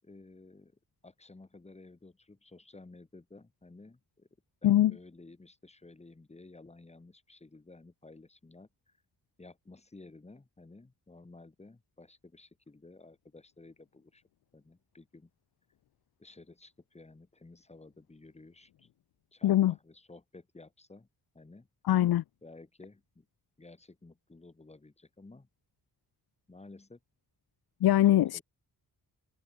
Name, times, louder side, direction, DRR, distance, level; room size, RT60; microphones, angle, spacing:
voice 1, 0.0-4.3 4.6-9.0 9.4-14.2 14.5-15.3 16.2-18.9 19.3-21.1 21.3-21.7 22.4-23.3 23.6-25.5 26.5-27.0 28.0-28.4, left 2 dB, 15° left, 6.7 m, -54 dB
voice 2, 19.4-19.7 21.9-22.2 27.8-28.4, left 13 dB, 85° left, 0.7 m, -22 dB
wide cardioid pair, 170°, 37 cm